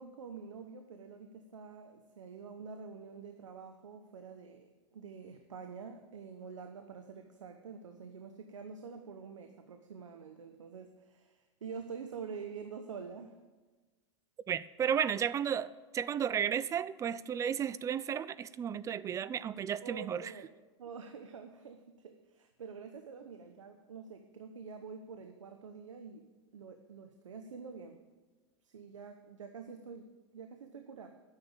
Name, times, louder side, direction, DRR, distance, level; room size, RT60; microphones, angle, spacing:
voice 1, 0.0-13.4 19.8-20.5 20.8-26.3 26.5-28.0 28.6-31.1, right 5 dB, 85° right, 6 dB, 0.9 m, -47 dB
voice 2, 14.5-20.3, right 8 dB, 20° right, 16 dB, 0.3 m, -33 dB
9.7 x 6.8 x 8.9 m, 1.2 s
hypercardioid pair, 110°, 16 cm